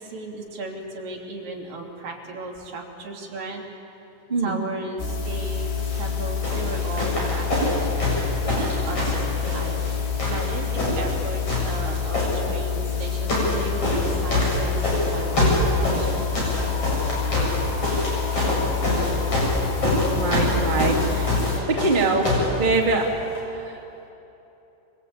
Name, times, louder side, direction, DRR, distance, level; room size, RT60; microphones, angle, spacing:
voice 1, 0.0-3.7 4.4-5.7 6.0-7.8 8.4-9.2 9.5-9.8 10.2-16.3, right 2 dB, 50° right, -1 dB, 4.3 m, -35 dB
voice 2, 4.3-4.6 20.1-21.4 21.7-22.3 22.6-23.2 23.5-23.8, right 3 dB, 20° right, -2 dB, 1.2 m, -23 dB
sound 1, 5.0-21.6, left 7 dB, 60° left, 4.7 m, -27 dB
sound 2, 5.8-6.0 6.4-9.9 10.2-11.2 11.4-12.3 12.9-13.6 13.8-22.5 23.3-23.4, left 1 dB, 30° left, 8.5 m, -25 dB
27.5 x 24.5 x 8.7 m, 3.0 s
omnidirectional pair, 5.7 m